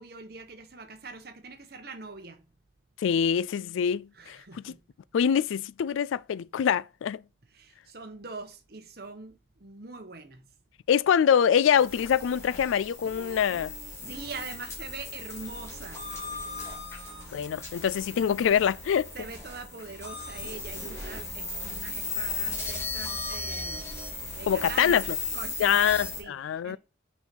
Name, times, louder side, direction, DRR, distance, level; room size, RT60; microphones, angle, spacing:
voice 1, 0.0-2.4 4.1-4.8 7.5-10.5 14.0-16.1 19.1-23.9 24.3-26.8, right 4 dB, 55° right, 1.1 m, -43 dB
voice 2, 3.0-4.4 4.6-4.7 5.1-7.2 10.9-13.7 17.3-19.1 24.5-25.0 25.6-26.8, left 8 dB, 90° left, 0.3 m, -24 dB
sound 1, 11.8-26.2, left 3 dB, 15° left, 2.8 m, -37 dB
7.0 x 4.5 x 5.3 m
head